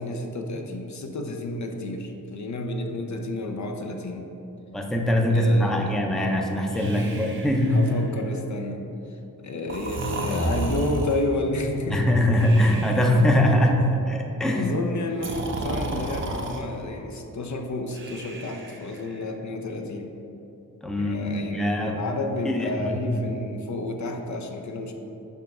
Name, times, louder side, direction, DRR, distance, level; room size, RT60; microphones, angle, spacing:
voice 1, 0.0-4.3 5.3-6.0 6.8-7.4 7.7-8.9 9.4-12.3 13.0-13.1 13.7-14.0 14.5-20.1 21.0-24.9, left 2 dB, 55° left, 3 dB, 0.7 m, -31 dB
voice 2, 4.7-7.8 11.9-14.8 20.8-22.0 22.4-23.0 23.3-23.4, equal, ahead, 2 dB, 0.6 m, -22 dB
Breathing, 6.7-8.3 9.7-11.3 12.4-13.4 15.1-16.6 17.9-19.1, right 2 dB, 35° right, 0.7 m, -32 dB
5.5 x 4.6 x 5.3 m, 2.9 s
cardioid pair, 85°, 36 cm